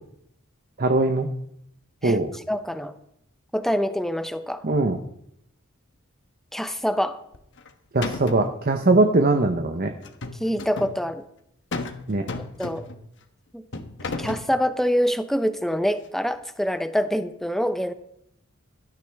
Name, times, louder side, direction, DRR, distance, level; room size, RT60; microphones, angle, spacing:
voice 1, 0.8-1.3 2.0-2.3 4.6-5.0 7.9-9.9 12.1-12.3, right 2 dB, 45° right, 5 dB, 0.9 m, -21 dB
voice 2, 2.5-2.9 3.5-4.6 6.5-7.2 10.4-11.2 12.6-12.9 13.5-13.6 14.2-17.9, equal, ahead, 10 dB, 0.7 m, -25 dB
sound 1, 7.3-7.7 8.0-8.6 10.0-11.0 11.7-12.0 12.3-13.0 13.7-14.5, left 3 dB, 60° left, 1.2 m, -33 dB
17.0 x 12.5 x 3.5 m, 0.75 s
head